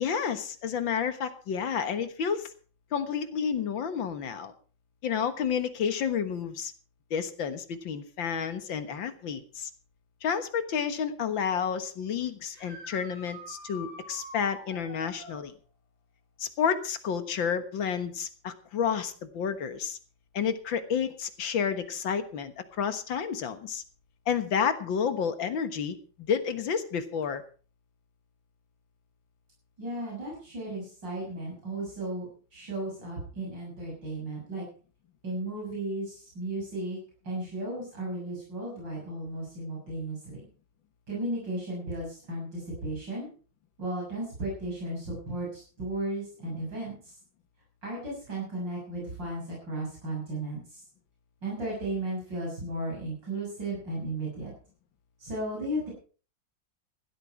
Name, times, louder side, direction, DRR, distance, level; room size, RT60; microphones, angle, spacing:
voice 1, 0.0-2.5 2.9-4.5 5.0-6.7 7.1-9.7 10.2-15.5 16.4-20.0 20.3-23.8 24.3-27.4, left 7 dB, 75° left, 10 dB, 2.1 m, -30 dB
sound 1, 12.5-15.4 18.8-18.9 20.9-21.0 27.2-27.3, left 1 dB, 5° left, 7.2 m, -45 dB
voice 2, 29.8-34.6 35.2-37.0 37.2-40.4 41.1-43.3 43.8-47.0 47.8-50.8 51.4-54.5 55.2-55.9, right 1 dB, 65° right, -4 dB, 7.6 m, -35 dB
15.5 x 12.5 x 4.6 m, 0.38 s
omnidirectional pair, 2.1 m